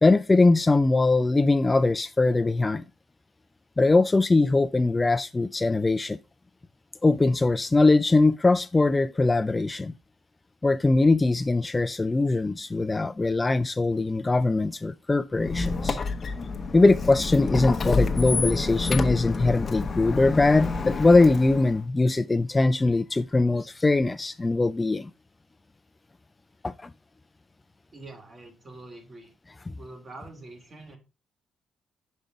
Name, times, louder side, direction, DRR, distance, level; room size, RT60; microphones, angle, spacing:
voice 1, 0.0-2.8 3.8-6.2 7.0-9.9 10.6-16.0 16.7-25.1 26.6-26.9 29.7-29.8, left 3 dB, 20° left, 0.3 m, -21 dB
Squeak, 15.4-21.8, left 4 dB, 40° left, 0.8 m, -28 dB
voice 2, 27.9-29.3 29.7-31.0, right 2 dB, 35° right, 2.5 m, -45 dB
5.3 x 5.1 x 4.5 m
cardioid pair, 90°, 0 cm